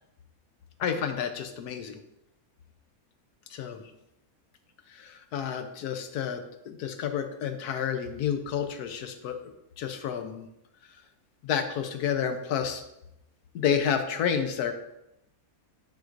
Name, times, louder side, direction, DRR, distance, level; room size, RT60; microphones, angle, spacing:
voice 1, 0.8-2.0 3.5-3.8 4.9-10.5 11.4-12.8 13.5-14.7, left 8 dB, 90° left, 7 dB, 1.2 m, -30 dB
9.2 x 4.6 x 2.5 m, 0.84 s
omnidirectional pair, 1.6 m